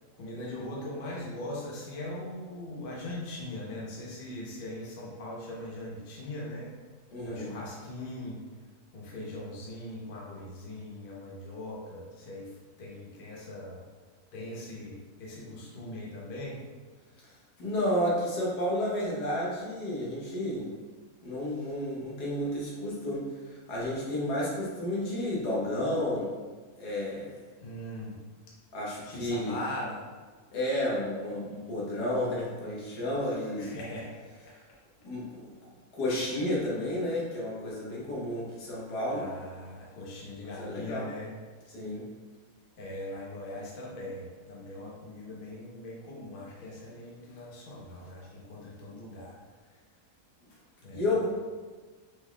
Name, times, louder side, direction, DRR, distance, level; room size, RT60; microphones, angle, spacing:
voice 1, 0.2-6.7 7.3-8.4 8.9-13.8 14.3-16.6 27.6-28.2 29.0-30.0 33.6-34.1 39.1-41.3 42.8-49.4 50.8-51.3, left 1 dB, 40° left, -4 dB, 1.0 m, -40 dB
voice 2, 7.1-7.5 17.6-20.8 21.2-26.4 26.8-27.3 28.7-29.6 30.5-33.8 35.0-35.5 35.9-39.3 40.4-41.1 41.7-42.1 50.9-51.3, left 1 dB, 85° left, -5 dB, 1.7 m, -31 dB
5.6 x 3.9 x 2.3 m, 1.4 s
omnidirectional pair, 1.7 m